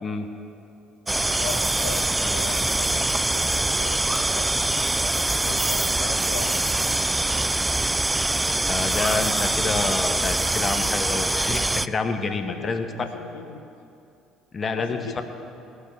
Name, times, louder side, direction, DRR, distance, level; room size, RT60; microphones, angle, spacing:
sound 1, 1.1-11.9, right 2 dB, 15° right, 0.4 m, -24 dB
voice 1, 1.4-4.9 5.4-7.5 9.5-9.7 12.3-12.8 13.1-13.6 14.8-15.2, left 5 dB, 80° left, 4 dB, 0.8 m, -38 dB
voice 2, 8.7-13.1 14.5-15.2, left 4 dB, 35° left, 7 dB, 1.2 m, -28 dB
18.5 x 6.5 x 6.9 m, 2.7 s
hypercardioid pair, 55°, 0 cm